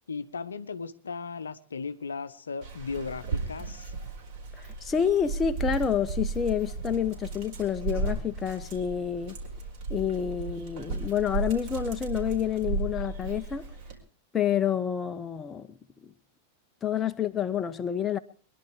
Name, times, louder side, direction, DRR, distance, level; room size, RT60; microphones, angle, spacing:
voice 1, 0.1-3.9, left 5 dB, 70° left, 0.8 m, -36 dB
Dog, 2.6-14.0, right 3 dB, 50° right, 4.6 m, -35 dB
voice 2, 4.5-9.4 9.9-13.7 14.3-15.7 16.0-16.1 16.8-18.2, left 8 dB, 20° left, 0.8 m, -28 dB
23.0 x 11.0 x 4.8 m
figure-of-eight pair, 90°, 0 cm